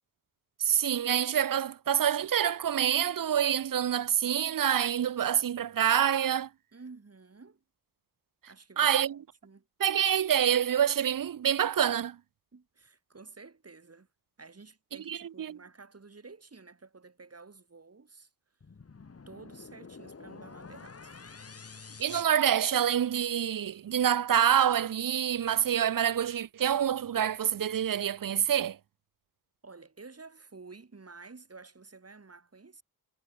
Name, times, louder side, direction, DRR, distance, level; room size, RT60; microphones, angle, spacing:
voice 1, 0.6-6.5 8.8-9.2 9.8-12.2 15.1-15.6 22.0-28.8, right 9 dB, 60° right, 0.6 m, -27 dB
voice 2, 6.7-7.6 8.5-9.7 12.5-14.1 14.4-18.3 19.3-21.4 21.9-22.0 29.6-32.8, right 4 dB, 40° right, 5.3 m, -51 dB
sound 1, 18.6-23.2, left 4 dB, 40° left, 2.0 m, -49 dB
wide cardioid pair, 105°, 38 cm